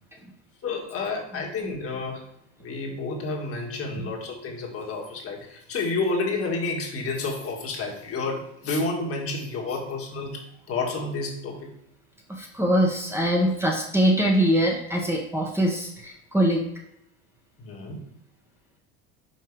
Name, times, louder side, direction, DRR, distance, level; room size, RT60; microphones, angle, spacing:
voice 1, 0.6-2.2 2.6-11.7 17.6-18.0, left 3 dB, 40° left, 0 dB, 1.8 m, -30 dB
voice 2, 1.3-1.7 4.0-4.1 12.3-16.7, equal, 5° right, 0 dB, 1.2 m, -23 dB
5.6 x 4.5 x 4.8 m, 0.74 s
supercardioid pair, 95°, 34 cm